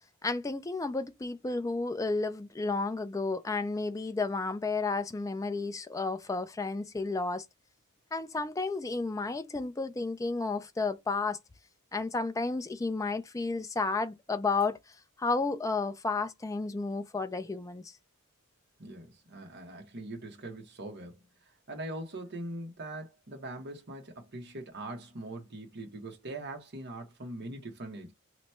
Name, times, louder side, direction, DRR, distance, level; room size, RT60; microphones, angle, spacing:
voice 1, 0.2-7.5 8.1-11.4 11.9-18.0, left 3 dB, 15° left, 0.3 m, -32 dB
voice 2, 18.8-28.1, right 1 dB, 50° right, 1.0 m, -42 dB
3.0 x 2.2 x 4.2 m
head